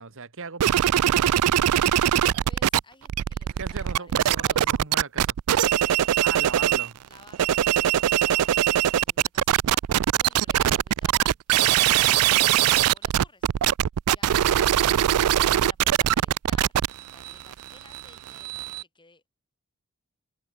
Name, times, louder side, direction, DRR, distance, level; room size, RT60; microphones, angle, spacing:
voice 1, 0.0-2.0 3.6-5.3 6.2-7.0, right 4 dB, 65° right, 1.5 m, -39 dB
sound 1, 0.6-2.8 3.0-6.9 7.3-18.8, right 11 dB, 80° right, 0.4 m, -22 dB
voice 2, 2.4-4.8 5.6-6.4 7.1-13.5 14.1-19.2, left 3 dB, 20° left, 7.5 m, -56 dB
head